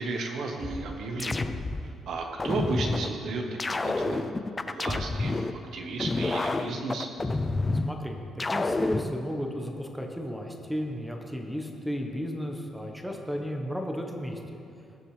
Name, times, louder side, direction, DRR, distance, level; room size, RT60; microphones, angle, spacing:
voice 1, 0.0-1.5 1.8-4.3 4.7-7.1, right 3 dB, 70° right, 2 dB, 1.1 m, -34 dB
sound 1, 0.6-1.9 2.4-3.1 3.6-5.5 6.0-7.9 8.4-9.1, left 3 dB, 25° left, 0.4 m, -29 dB
voice 2, 7.8-14.6, equal, ahead, 2 dB, 1.2 m, -34 dB
18.5 x 6.7 x 3.4 m, 2.6 s
cardioid pair, 90°, 0 cm